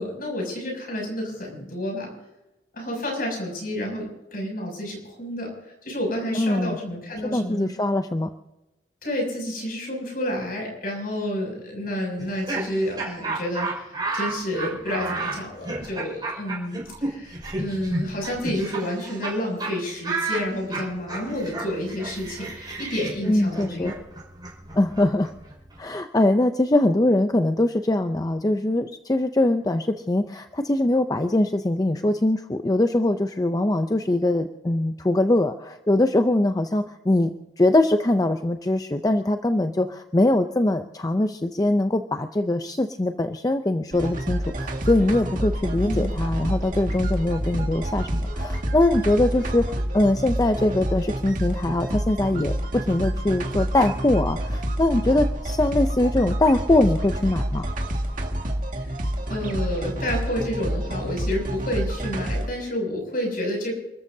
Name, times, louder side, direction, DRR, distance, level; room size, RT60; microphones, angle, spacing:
voice 1, 0.0-2.1 2.7-5.5 5.8-7.7 9.0-24.0 45.8-46.1 58.8-58.9 59.3-63.7, left 1 dB, 55° left, 0 dB, 7.0 m, -30 dB
voice 2, 6.3-6.8 7.3-8.3 23.2-23.9 24.7-25.3 25.8-37.3 37.6-57.7, left 1 dB, 20° left, 7 dB, 0.6 m, -22 dB
Laughter, 12.2-19.3 19.6-19.7 20.0-25.8, right 3 dB, 25° right, 5.3 m, -32 dB
sound 1, 43.9-62.5, right 1 dB, 50° right, 2.0 m, -28 dB
29.0 x 14.0 x 2.8 m, 0.96 s
head